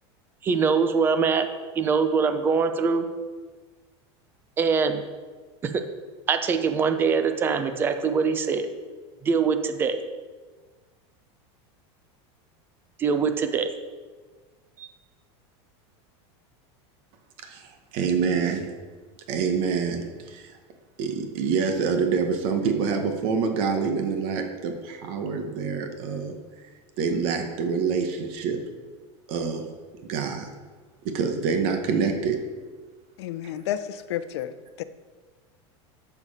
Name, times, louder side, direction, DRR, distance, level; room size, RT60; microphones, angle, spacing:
voice 1, 0.4-1.5 1.8-3.0 4.6-5.0 5.6-5.8 6.3-8.7 9.2-10.0 13.0-13.7 14.8-14.9, right 5 dB, 15° right, 8 dB, 0.5 m, -23 dB
voice 2, 17.4-18.7 19.3-20.5 21.0-26.3 27.0-28.6 29.3-29.6 30.0-30.5 31.0-32.4 33.5-33.7, right 5 dB, 40° right, 5 dB, 1.0 m, -26 dB
voice 3, 33.2-34.5 34.8-34.9, left 11 dB, 70° left, 13 dB, 0.7 m, -31 dB
12.5 x 7.0 x 4.2 m, 1.4 s
supercardioid pair, 180°, 14 cm